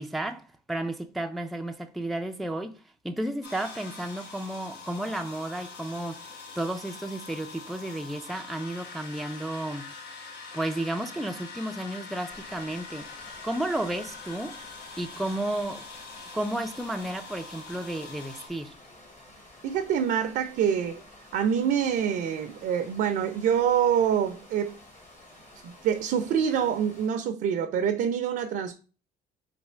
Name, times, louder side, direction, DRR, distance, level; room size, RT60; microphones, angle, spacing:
voice 1, 0.0-6.2 6.6-9.9 10.5-13.1 13.4-14.6 15.0-15.9 16.3-18.7, right 1 dB, ahead, 0.3 m, -32 dB
sound 1, 3.4-18.5, left 4 dB, 85° left, 1.1 m, -44 dB
sound 2, 12.3-27.1, left 1 dB, 45° left, 1.4 m, -52 dB
voice 2, 19.6-21.0 21.3-24.8 25.6-28.7, right 8 dB, 65° right, 0.5 m, -26 dB
3.4 x 2.8 x 4.3 m
cardioid pair, 110°, 17 cm